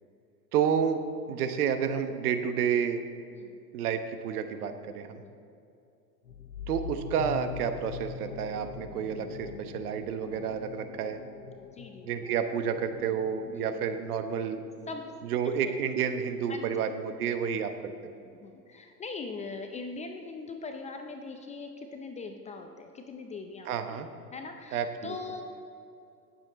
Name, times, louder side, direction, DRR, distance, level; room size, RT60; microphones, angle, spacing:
voice 1, 0.5-1.0 1.3-3.0 3.7-5.2 6.7-11.2 12.0-14.6 15.2-18.1 23.7-24.1 24.7-25.1, right 7 dB, 60° right, 8 dB, 1.2 m, -30 dB
voice 2, 5.0-5.3 11.7-12.3 13.4-13.8 14.9-15.1 15.4-15.7 16.5-16.8 18.1-25.4, left 4 dB, 15° left, 5 dB, 0.5 m, -41 dB
sound 1, 6.3-15.6, left 6 dB, 90° left, 0.7 m, -43 dB
19.0 x 7.5 x 4.1 m, 2.6 s
hypercardioid pair, 100°, 50 cm